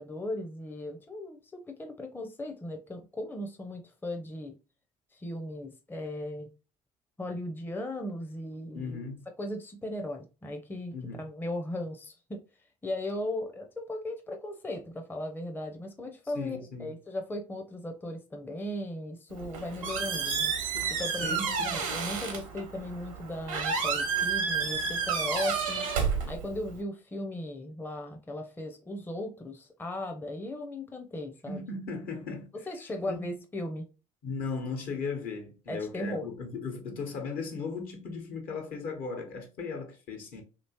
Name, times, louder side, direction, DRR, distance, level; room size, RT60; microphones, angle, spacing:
voice 1, 0.0-4.5 5.1-6.5 7.2-9.0 9.4-12.4 12.8-20.5 20.9-21.4 21.6-25.9 26.3-31.6 32.7-33.9 35.7-36.3, left 1 dB, 10° left, 0.6 m, -37 dB
voice 2, 8.7-9.1 10.9-11.2 16.3-16.9 21.1-21.8 31.5-32.5 33.1-33.3 34.2-40.4, left 4 dB, 60° left, 1.2 m, -37 dB
Squeak, 19.3-26.8, right 5 dB, 80° right, 0.8 m, -31 dB
3.0 x 2.9 x 2.8 m
hypercardioid pair, 55°, 17 cm